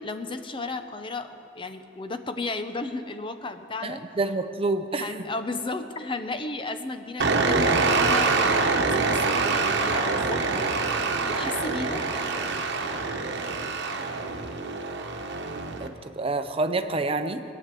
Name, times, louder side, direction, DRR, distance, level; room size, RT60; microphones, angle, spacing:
voice 1, 0.0-4.0 4.9-10.7 11.3-12.0, left 3 dB, 25° left, 8 dB, 0.7 m, -34 dB
voice 2, 3.8-5.1 15.8-17.4, right 3 dB, 30° right, 8 dB, 0.7 m, -28 dB
sound 1, 7.2-15.9, right 4 dB, 60° right, 1.1 m, -25 dB
18.0 x 9.3 x 7.5 m, 2.8 s
head